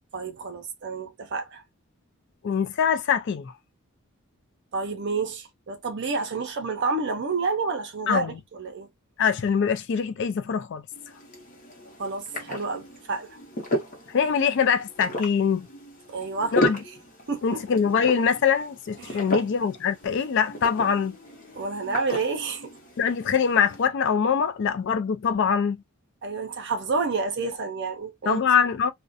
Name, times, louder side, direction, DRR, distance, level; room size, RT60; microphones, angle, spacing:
voice 1, 0.1-1.6 4.7-8.9 12.0-13.4 16.1-16.5 17.3-17.6 19.0-19.2 21.5-22.7 26.2-28.4, right 4 dB, 50° right, 0.5 m, -29 dB
voice 2, 2.4-3.5 8.1-8.4 9.2-10.8 14.1-15.7 16.5-16.8 17.4-21.2 23.0-25.8 28.3-28.9, left 6 dB, 55° left, 0.3 m, -23 dB
sound 1, 10.9-23.8, equal, 35° left, 0.8 m, -34 dB
2.4 x 2.1 x 2.5 m
head